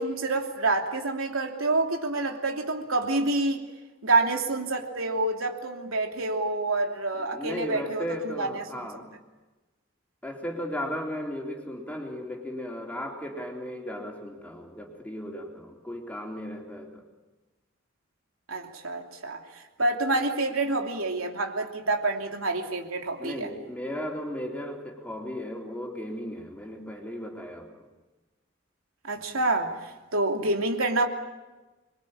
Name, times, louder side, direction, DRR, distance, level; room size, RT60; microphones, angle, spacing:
voice 1, 0.0-3.6 4.0-8.6 18.5-23.5 29.0-31.1, right 2 dB, 90° right, 3 dB, 3.0 m, -27 dB
voice 2, 7.2-9.1 10.2-17.0 23.2-27.9, equal, 5° left, 1 dB, 3.6 m, -36 dB
26.5 x 22.5 x 8.8 m, 1.2 s
head